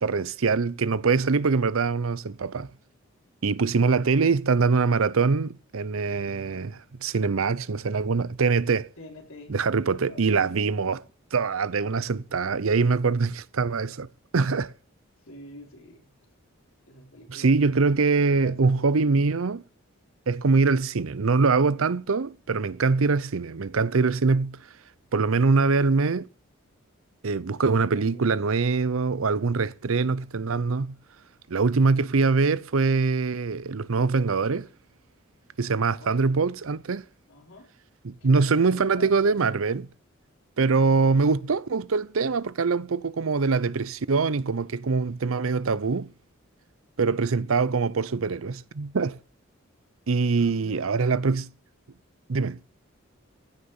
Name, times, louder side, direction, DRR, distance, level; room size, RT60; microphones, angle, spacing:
voice 1, 0.0-2.7 3.4-8.9 9.5-11.0 11.3-14.1 14.3-14.7 17.3-19.6 20.3-24.6 25.1-26.3 27.2-31.0 31.5-34.7 35.6-37.1 38.0-39.9 40.6-46.1 47.0-49.2 50.1-51.5 52.3-52.6, right 4 dB, 80° right, 0.6 m, -23 dB
voice 2, 9.0-10.4 15.2-16.1 16.8-17.7 18.1-19.0 22.5-23.1 27.6-28.3 36.0-36.4 37.3-37.7 38.2-39.2 47.0-47.6 50.3-50.9, left 1 dB, 80° left, 4.1 m, -47 dB
15.5 x 6.6 x 7.2 m
head